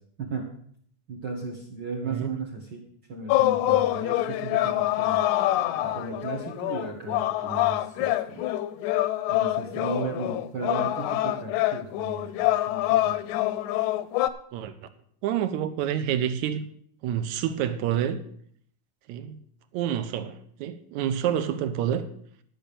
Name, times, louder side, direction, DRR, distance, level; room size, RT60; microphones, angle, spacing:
voice 1, 1.1-2.8 3.1-5.2 5.8-8.4 9.3-13.2, right 4 dB, 50° right, 1.3 m, -35 dB
voice 2, 2.0-2.3 14.5-14.7 15.2-16.6 17.0-18.2 19.1-19.4 19.7-22.1, right 10 dB, 75° right, 2.0 m, -28 dB
sound 1, 3.3-14.3, left 15 dB, 80° left, 1.9 m, -25 dB
12.0 x 6.1 x 6.9 m
omnidirectional pair, 3.7 m